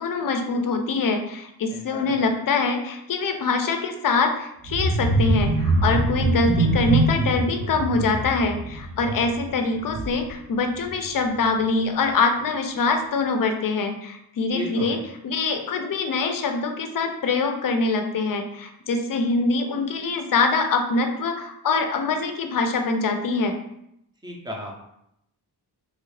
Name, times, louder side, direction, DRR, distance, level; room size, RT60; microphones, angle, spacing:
voice 1, 0.0-23.5, left 3 dB, 55° left, 5 dB, 0.5 m, -24 dB
voice 2, 1.7-2.2 14.5-15.0 24.2-24.7, left 1 dB, 10° right, -1 dB, 0.5 m, -34 dB
sound 1, 4.6-10.4 10.8-11.1 11.4-11.5, right 2 dB, 75° right, 0.7 m, -24 dB
3.1 x 2.3 x 3.1 m, 0.78 s
wide cardioid pair, 135°, 41 cm